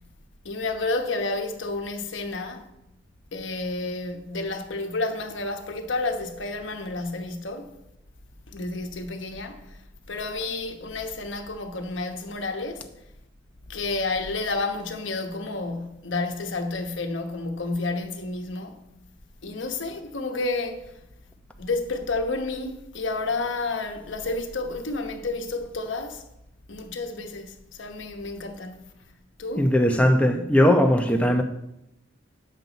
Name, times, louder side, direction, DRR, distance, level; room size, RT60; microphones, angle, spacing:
voice 1, 0.4-2.7 3.3-7.7 8.5-9.8 10.1-12.9 13.7-18.8 19.4-20.9 21.6-26.2 26.7-28.8 29.4-29.7, left 3 dB, 70° left, 1.1 m, -30 dB
voice 2, 29.6-31.4, equal, 5° left, 0.8 m, -19 dB
9.2 x 7.5 x 4.0 m
head